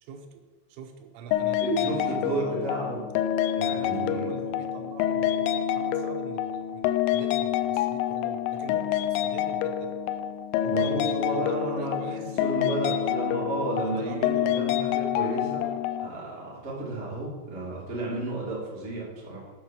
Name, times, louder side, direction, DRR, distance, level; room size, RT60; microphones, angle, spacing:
voice 1, 0.0-0.4 0.7-2.7 3.7-10.0 10.6-12.4 12.9-13.1 13.8-14.6, right 6 dB, 90° right, 6 dB, 3.3 m, -42 dB
sound 1, 1.3-16.1, left 10 dB, 85° left, 2.6 m, -27 dB
voice 2, 1.6-3.0 3.5-4.3 10.7-15.7 16.0-19.5, right 2 dB, 25° right, -5 dB, 1.4 m, -32 dB
8.7 x 5.6 x 6.0 m, 1.3 s
omnidirectional pair, 5.6 m